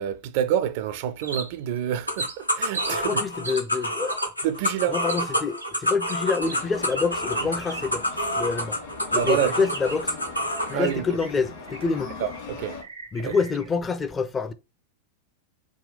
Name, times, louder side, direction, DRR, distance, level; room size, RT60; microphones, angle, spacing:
voice 1, 0.0-3.2 4.4-5.0 9.1-9.5 10.7-11.1 12.2-12.8 13.2-13.3, right 10 dB, 50° right, 0.4 m, -27 dB
sound 1, 1.2-1.8 2.2-3.0 3.4-3.7 4.1-4.3 5.1-5.3 5.6-8.1 8.4-8.5 9.2-10.1 10.6-12.0 12.3-12.4 12.7-13.7, right 3 dB, 80° right, 0.8 m, -37 dB
sound 2, 2.1-10.7, equal, 85° left, 0.5 m, -28 dB
voice 2, 2.9-4.3 4.9-8.0 8.3-8.8 9.1-10.2 10.7-12.1 13.1-14.5, left 5 dB, 20° left, 0.4 m, -27 dB
sound 3, 6.4-12.8, left 4 dB, 55° left, 1.4 m, -40 dB
3.6 x 2.2 x 3.8 m
figure-of-eight pair, 90°, 0 cm